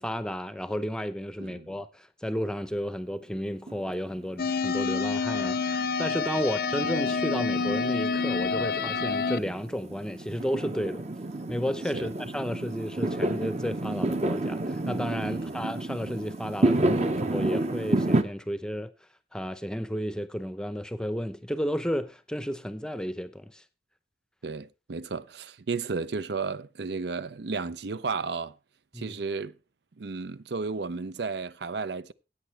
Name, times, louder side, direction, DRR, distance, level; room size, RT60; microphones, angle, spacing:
voice 1, 0.0-11.1 11.5-18.9 19.3-23.6 28.9-29.2, equal, 5° left, 0.7 m, -32 dB
Fireworks, 3.7-18.2, right 2 dB, 35° right, 0.9 m, -30 dB
sound 1, 4.4-9.4, left 5 dB, 55° left, 0.6 m, -28 dB
voice 2, 24.4-28.5 28.9-29.5 30.0-32.1, right 4 dB, 65° right, 0.5 m, -33 dB
16.0 x 8.8 x 3.3 m
head